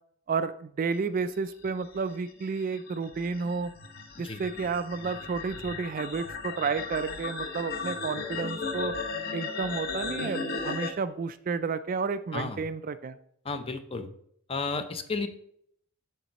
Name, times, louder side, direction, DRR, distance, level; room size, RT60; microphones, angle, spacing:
voice 1, 0.3-3.7 4.2-8.9 9.3-13.2, right 5 dB, 40° right, 12 dB, 0.3 m, -31 dB
sound 1, 1.6-10.9, left 4 dB, 45° left, 0.9 m, -36 dB
voice 2, 13.4-14.1 14.5-15.3, left 4 dB, 25° left, 9 dB, 0.6 m, -32 dB
9.1 x 7.0 x 2.9 m, 0.69 s
head